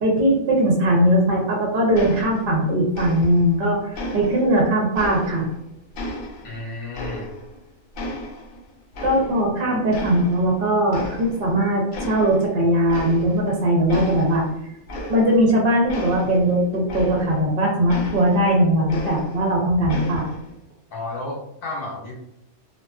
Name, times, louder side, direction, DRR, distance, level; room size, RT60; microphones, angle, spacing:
voice 1, 0.0-5.5 9.0-14.4 15.1-20.3, right 1 dB, 55° right, -1 dB, 0.7 m, -20 dB
sound 1, 1.9-2.7 2.9-3.6 3.9-5.6 5.9-7.6 7.9-9.6 9.9-10.6 10.9-11.6 11.9-12.5 12.9-13.5 13.9-17.5 17.9-19.5 19.9-20.5, left 1 dB, 85° left, 1.0 m, -34 dB
voice 2, 6.4-7.3 20.9-22.2, left 2 dB, 50° left, -3 dB, 0.8 m, -32 dB
2.4 x 2.2 x 2.3 m, 0.82 s
omnidirectional pair, 1.3 m